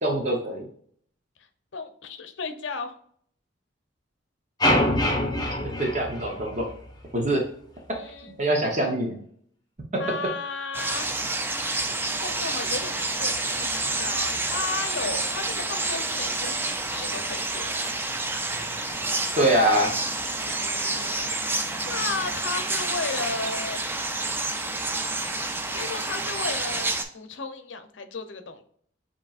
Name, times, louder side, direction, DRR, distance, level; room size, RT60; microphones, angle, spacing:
voice 1, 0.0-0.7 5.6-6.7 7.1-7.4 8.4-9.2 9.9-10.0 19.4-19.9, right 1 dB, 40° right, 1 dB, 0.9 m, -23 dB
voice 2, 1.7-3.0 7.9-8.4 10.0-11.1 12.2-17.9 20.3-21.4 21.8-23.8 25.7-28.6, left 4 dB, 75° left, 9 dB, 0.7 m, -34 dB
sound 1, 4.6-6.9, left 1 dB, 20° left, 0.8 m, -24 dB
sound 2, 10.7-27.0, right 2 dB, 10° right, 0.4 m, -29 dB
7.3 x 3.0 x 2.4 m, 0.62 s
head